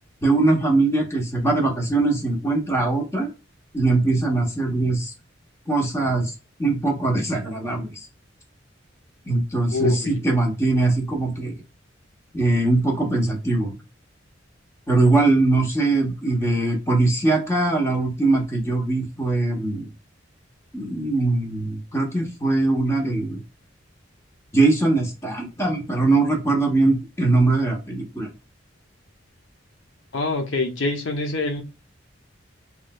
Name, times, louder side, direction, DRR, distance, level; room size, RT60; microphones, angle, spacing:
voice 1, 0.2-3.3 3.7-5.1 5.7-6.3 6.6-7.9 9.3-11.5 12.3-13.8 14.9-19.9 20.7-23.4 24.5-28.3, right 2 dB, 15° left, 0.9 m, -21 dB
voice 2, 9.7-10.2 30.1-31.6, left 3 dB, 80° left, 0.7 m, -25 dB
3.1 x 3.1 x 2.2 m
head